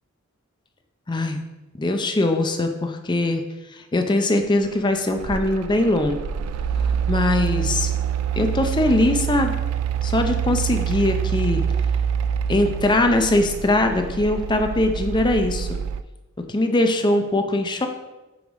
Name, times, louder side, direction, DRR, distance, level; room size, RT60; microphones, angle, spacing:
voice 1, 1.1-1.4 1.8-3.4 3.9-6.2 7.1-7.9 8.4-9.5 10.0-11.6 12.5-15.8 16.5-17.9, left 2 dB, 20° left, 5 dB, 0.5 m, -21 dB
Mechanical fan, 4.7-16.0, right 8 dB, 75° right, 0.3 m, -26 dB
5.4 x 4.6 x 4.9 m, 1.1 s
head